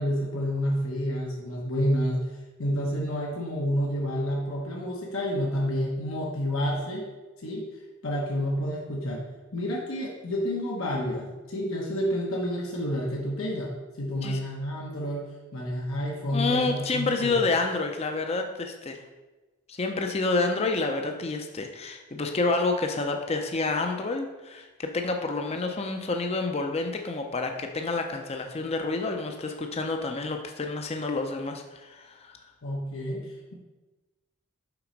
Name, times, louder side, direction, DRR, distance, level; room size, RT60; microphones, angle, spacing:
voice 1, 0.0-2.3 2.6-7.0 7.4-7.7 8.0-9.2 9.5-15.2 15.5-17.4 32.6-33.5, equal, 80° left, -3 dB, 1.1 m, -29 dB
voice 2, 16.3-19.0 19.7-32.3, left 3 dB, 30° left, 4 dB, 0.5 m, -28 dB
5.9 x 4.3 x 5.1 m, 1.2 s
head